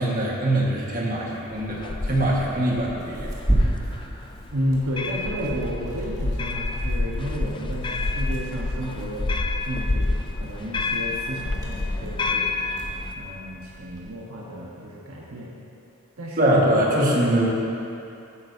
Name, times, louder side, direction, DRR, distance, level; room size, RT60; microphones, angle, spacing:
voice 1, 0.0-4.0 16.4-17.5, right 1 dB, 35° right, -4 dB, 1.6 m, -23 dB
sound 1, 1.6-13.1, left 2 dB, 20° left, 0.3 m, -29 dB
Tearing, 2.4-14.1, right 1 dB, 15° right, 1.4 m, -33 dB
voice 2, 4.5-9.4 9.6-12.6 13.1-15.5 16.2-16.8, equal, 70° right, -4 dB, 1.2 m, -31 dB
15.5 x 8.7 x 2.7 m, 2.7 s
head